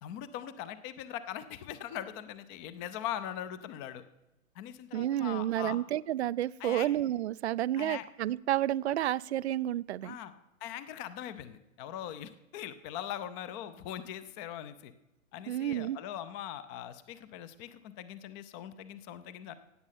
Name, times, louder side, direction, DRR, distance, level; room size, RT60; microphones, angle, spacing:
voice 1, 0.0-4.0 4.6-5.8 6.6-6.9 7.8-8.0 10.0-10.3 10.6-14.9 15.3-19.5, left 11 dB, 20° left, 13 dB, 0.5 m, -41 dB
voice 2, 4.9-10.2 15.5-16.0, right 12 dB, 55° right, 20 dB, 0.4 m, -30 dB
16.5 x 8.8 x 5.8 m, 0.96 s
figure-of-eight pair, 115°, 41 cm